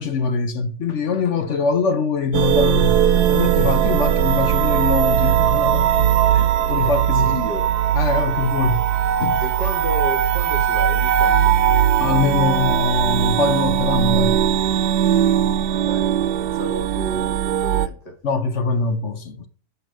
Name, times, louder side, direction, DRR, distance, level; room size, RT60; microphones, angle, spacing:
voice 1, 0.0-3.0 3.3-7.3 7.9-8.8 9.2-9.4 12.0-14.4 18.2-19.5, left 4 dB, 50° left, 1.1 m, -23 dB
sound 1, 2.3-17.9, right 10 dB, 75° right, 1.1 m, -19 dB
voice 2, 6.6-7.7 9.4-11.5 15.6-18.2, equal, 25° left, 1.9 m, -32 dB
8.3 x 5.1 x 6.2 m
omnidirectional pair, 1.8 m